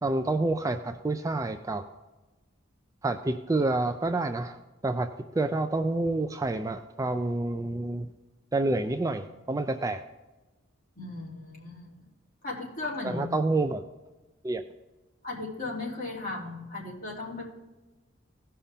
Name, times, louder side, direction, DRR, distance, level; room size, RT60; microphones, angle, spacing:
voice 1, 0.0-1.8 3.0-4.6 4.8-8.1 8.5-10.0 13.0-13.8 14.4-14.6, right 2 dB, 15° right, 7 dB, 0.3 m, -28 dB
voice 2, 11.0-11.9 12.4-13.3 15.2-17.5, left 2 dB, 40° left, -6 dB, 3.3 m, -36 dB
16.5 x 5.6 x 3.6 m, 1.1 s
head